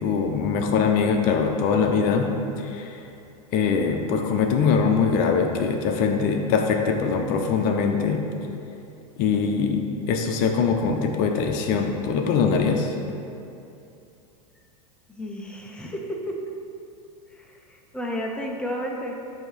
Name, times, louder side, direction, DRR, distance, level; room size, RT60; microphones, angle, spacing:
voice 1, 0.0-3.1 3.5-8.3 9.2-12.9, left 5 dB, 50° left, 4 dB, 0.6 m, -22 dB
voice 2, 15.1-16.4 17.3-19.1, equal, 5° left, 0 dB, 0.6 m, -32 dB
7.4 x 2.8 x 4.9 m, 2.6 s
hypercardioid pair, 105°, 19 cm